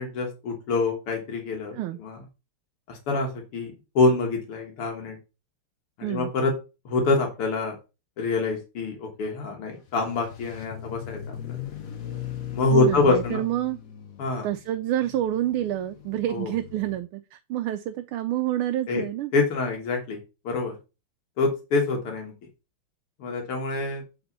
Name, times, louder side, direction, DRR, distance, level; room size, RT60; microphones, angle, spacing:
voice 1, 0.0-2.2 2.9-5.2 6.0-6.5 6.9-7.8 8.2-11.6 12.5-13.4 14.2-14.5 16.3-16.5 18.9-19.1 19.3-20.2 20.4-20.8 21.4-22.3 23.2-24.0, left 3 dB, 80° left, 2 dB, 2.4 m, -26 dB
sound 1, 9.9-17.0, left 11 dB, 55° left, 1.1 m, -39 dB
voice 2, 12.7-13.8 14.4-19.3, right 12 dB, 80° right, 6 dB, 1.4 m, -28 dB
8.0 x 4.3 x 4.0 m, 0.29 s
omnidirectional pair, 2.4 m